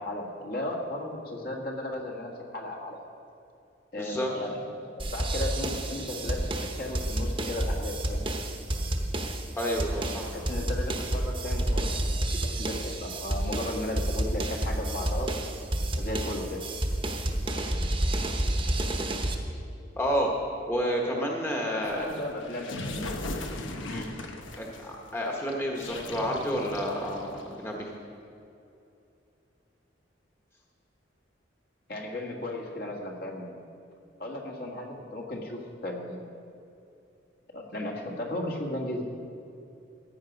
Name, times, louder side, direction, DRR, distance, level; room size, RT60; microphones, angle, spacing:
voice 1, 0.0-3.0 3.9-8.2 10.3-15.3 16.0-16.6 21.7-23.5 23.8-24.1 31.9-33.6 34.2-36.2 37.5-39.0, left 1 dB, 55° left, 0 dB, 1.7 m, -35 dB
voice 2, 4.0-4.3 9.6-10.5 20.0-20.3 20.7-22.1 24.6-27.9, equal, 15° left, -1 dB, 1.2 m, -30 dB
sound 1, 5.0-19.4, right 1 dB, 25° right, 1.0 m, -30 dB
sound 2, 21.8-27.7, left 2 dB, 90° left, 1.1 m, -38 dB
15.0 x 9.0 x 5.2 m, 2.7 s
head